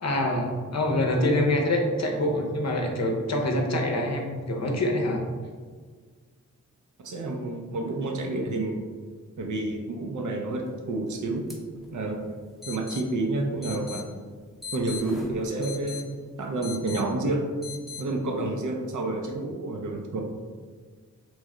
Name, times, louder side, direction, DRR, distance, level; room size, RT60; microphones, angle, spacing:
voice 1, 0.0-5.3, left 1 dB, 55° left, 2 dB, 0.7 m, -25 dB
voice 2, 7.0-8.8 9.4-11.5 11.9-14.0 14.7-17.4 18.0-20.2, right 2 dB, 65° right, 2 dB, 0.6 m, -29 dB
sound 1, 11.5-11.6 11.8-11.9 12.6-13.0 13.6-14.0 14.6-16.0 16.6-17.0 17.6-18.0, left 6 dB, ahead, 0.7 m, -38 dB
3.1 x 2.0 x 3.6 m, 1.5 s
cardioid pair, 50°, 32 cm